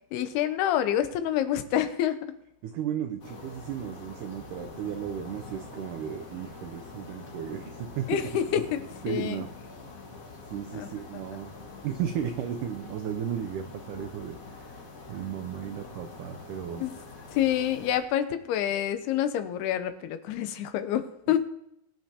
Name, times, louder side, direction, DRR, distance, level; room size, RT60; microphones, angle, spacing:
voice 1, 0.1-2.3 8.1-9.4 10.7-10.9 16.8-17.0 17.3-21.4, left 11 dB, 85° left, 10 dB, 2.8 m, -27 dB
voice 2, 2.6-8.2 9.0-9.5 10.5-11.6 11.8-14.7 15.1-16.9 21.3-21.4, right 9 dB, 90° right, 7 dB, 1.8 m, -34 dB
sound 1, 3.2-18.0, left 3 dB, 70° left, 0.8 m, -45 dB
21.5 x 9.3 x 2.9 m, 0.79 s
omnidirectional pair, 4.5 m